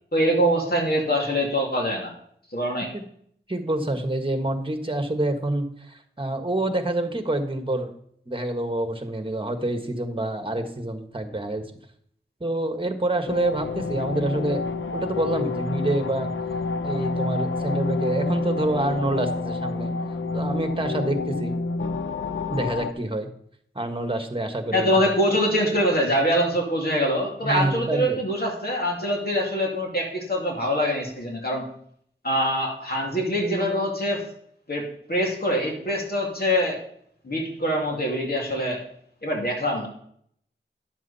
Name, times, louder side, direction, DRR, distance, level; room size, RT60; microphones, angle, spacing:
voice 1, 0.1-2.1 2.5-2.9 24.7-31.7 32.2-34.2 34.7-36.8 37.2-38.8 39.2-39.9, equal, 50° left, -1 dB, 2.5 m, -24 dB
voice 2, 3.5-7.9 8.3-11.6 12.4-14.6 14.9-16.3 16.8-19.9 20.3-21.5 22.5-23.3 23.7-25.0 27.4-28.2, right 1 dB, 25° right, 6 dB, 1.5 m, -27 dB
sound 1, 13.3-22.9, left 3 dB, 75° left, 0.6 m, -28 dB
11.0 x 7.4 x 4.2 m, 0.66 s
wide cardioid pair, 50°, 20 cm